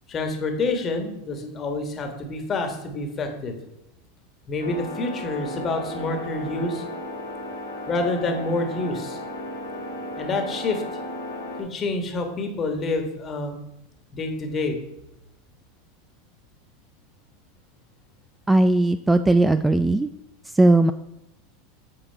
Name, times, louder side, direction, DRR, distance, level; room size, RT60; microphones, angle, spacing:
voice 1, 0.1-3.5 4.5-6.8 7.9-9.2 10.2-10.8 11.6-13.6 14.1-14.8, left 3 dB, 30° left, 5 dB, 1.4 m, -27 dB
sound 1, 4.6-11.6, left 1 dB, 85° left, 2.0 m, -34 dB
voice 2, 18.5-20.1 20.5-20.9, right 2 dB, 10° right, 11 dB, 0.3 m, -18 dB
7.7 x 4.2 x 4.6 m, 0.88 s
hypercardioid pair, 90°, 0 cm